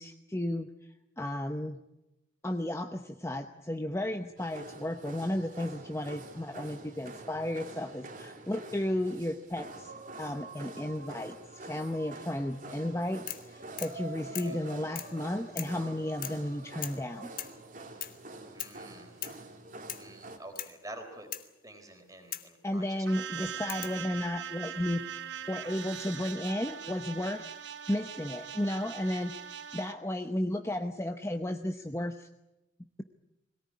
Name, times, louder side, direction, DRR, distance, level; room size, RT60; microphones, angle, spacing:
voice 1, 0.0-1.8 2.4-9.9 10.2-17.3 22.6-25.0 25.5-27.5 27.9-29.3 29.7-32.3, left 1 dB, 15° left, 6 dB, 0.8 m, -33 dB
sound 1, 4.4-20.4, right 2 dB, 40° right, 2.7 m, -46 dB
sound 2, 13.3-13.5 13.8-14.0 14.3-14.6 15.0-15.2 15.6-15.8 16.2-16.5 16.8-17.0 17.4-17.6 18.0-18.2 18.6-18.8 19.2-19.4 19.9-20.1 20.6-20.8 21.3-21.5 22.3-22.5 23.7-24.0 25.2-25.7, left 12 dB, 45° left, 1.5 m, -40 dB
voice 2, 18.5-19.2 20.0-21.3 21.6-23.1 23.4-24.2, right 1 dB, 15° right, 5 dB, 3.9 m, -48 dB
sound 3, 23.1-29.9, right 9 dB, 60° right, 1.1 m, -41 dB
21.5 x 18.0 x 9.6 m, 0.95 s
head